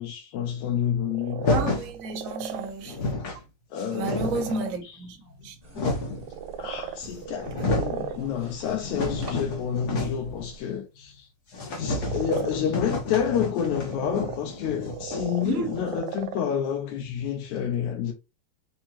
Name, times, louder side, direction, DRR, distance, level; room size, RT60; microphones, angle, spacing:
voice 1, 0.0-1.5 3.7-4.4 4.8-5.0 6.6-7.5 7.8-11.3 11.8-18.1, left 8 dB, 80° left, 2.0 m, -29 dB
sound 1, 1.1-2.7 3.3-3.4 3.8-4.7 6.1-8.2 11.8-12.5 13.6-16.4, right 9 dB, 80° right, 1.9 m, -36 dB
sound 2, 1.4-1.9 2.6-2.7 2.8-3.4 3.8-4.6 5.3-6.3 7.0-7.1 7.4-8.0 8.4-10.4 10.6-10.7 11.0-11.1 11.5-16.0, left 2 dB, 65° left, 1.0 m, -30 dB
voice 2, 1.5-3.0 3.9-5.6 7.9-8.3 15.4-15.7, right 3 dB, 60° right, 0.8 m, -32 dB
sound 3, 5.6-10.6, right 2 dB, 30° right, 1.0 m, -46 dB
6.2 x 2.9 x 2.9 m
omnidirectional pair, 3.6 m